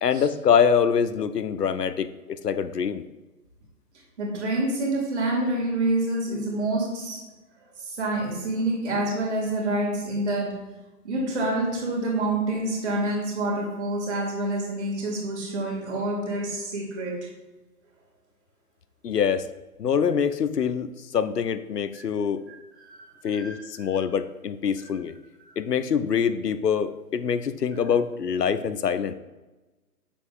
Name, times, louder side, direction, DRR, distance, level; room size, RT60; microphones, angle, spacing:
voice 1, 0.0-3.0 19.0-19.5 19.8-22.4 23.2-25.1 25.6-29.1, left 7 dB, 85° left, 13 dB, 0.6 m, -24 dB
voice 2, 4.2-7.2 7.8-10.5 11.0-17.3 22.8-23.0 23.3-23.5, right 2 dB, 45° right, -1 dB, 2.3 m, -27 dB
7.2 x 6.9 x 2.5 m, 1.1 s
figure-of-eight pair, 130°, 47 cm